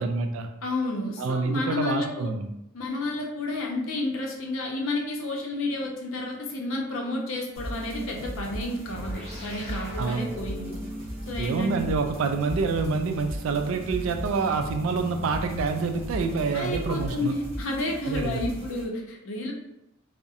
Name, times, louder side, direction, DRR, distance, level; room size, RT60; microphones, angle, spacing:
voice 1, 0.0-0.5 1.2-2.5 10.0-10.3 11.4-17.3 18.0-18.4, right 4 dB, 75° right, 6 dB, 0.3 m, -27 dB
voice 2, 0.6-2.3 2.7-10.8 11.3-11.9 16.5-19.5, left 2 dB, 75° left, 0 dB, 0.5 m, -31 dB
sound 1, 7.5-18.8, equal, 30° right, 0.9 m, -37 dB
sound 2, 8.9-17.7, left 1 dB, 5° left, 1.1 m, -42 dB
2.7 x 2.0 x 2.3 m, 0.85 s
head